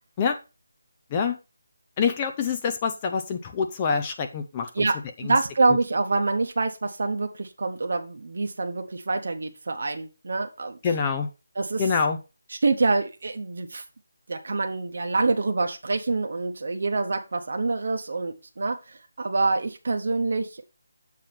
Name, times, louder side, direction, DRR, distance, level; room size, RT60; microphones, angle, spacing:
voice 1, 2.0-4.7 5.3-5.4 10.8-11.3 11.8-12.2, left 5 dB, 15° left, 6 dB, 0.4 m, -25 dB
voice 2, 4.7-10.8 11.6-11.8 12.5-13.8 14.3-20.6, right 3 dB, 45° right, 4 dB, 0.9 m, -26 dB
7.6 x 3.5 x 5.9 m, 0.28 s
figure-of-eight pair, 180°, 0 cm